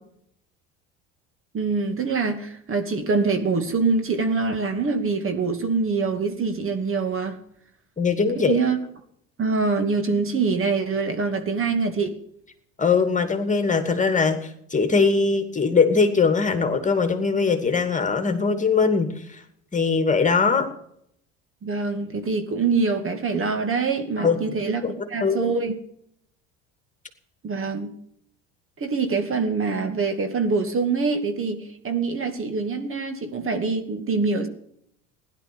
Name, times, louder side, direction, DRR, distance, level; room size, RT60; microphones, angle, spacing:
voice 1, 1.5-7.4 8.5-8.8 9.4-12.2 21.6-25.8 27.4-27.9 28.8-34.5, right 4 dB, 35° right, 2.4 m, -24 dB
voice 2, 8.0-8.6 12.8-19.4 19.7-20.7 24.2-24.5 24.8-25.5, left 5 dB, 20° left, 2.6 m, -21 dB
16.0 x 11.5 x 7.0 m
hypercardioid pair, 80°, 36 cm